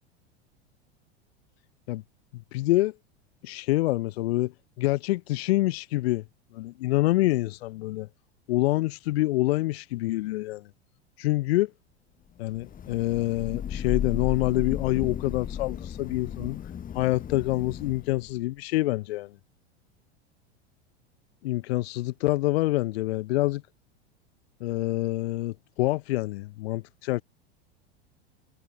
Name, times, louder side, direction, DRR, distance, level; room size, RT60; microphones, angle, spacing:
voice 1, 2.5-2.9 3.4-4.5 4.8-6.2 6.5-8.1 8.5-10.6 11.2-11.7 12.4-16.6 16.9-19.3 21.4-23.6 24.6-27.2, left 18 dB, 65° left, 0.7 m, -26 dB
Thunder / Rain, 12.5-18.3, left 9 dB, 25° left, 1.4 m, -34 dB
hypercardioid pair, 90°, 33 cm